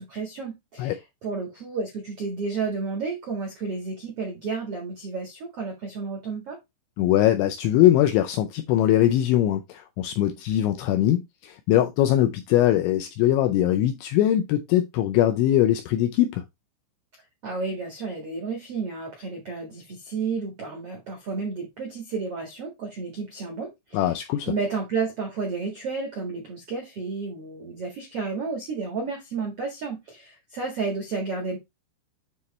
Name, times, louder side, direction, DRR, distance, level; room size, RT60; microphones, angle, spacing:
voice 1, 0.0-6.6 17.4-24.0 24.5-31.6, right 4 dB, 70° right, 1.4 m, -31 dB
voice 2, 7.0-16.4 23.9-24.5, left 12 dB, 85° left, 2.6 m, -21 dB
9.4 x 3.2 x 4.2 m
omnidirectional pair, 6.0 m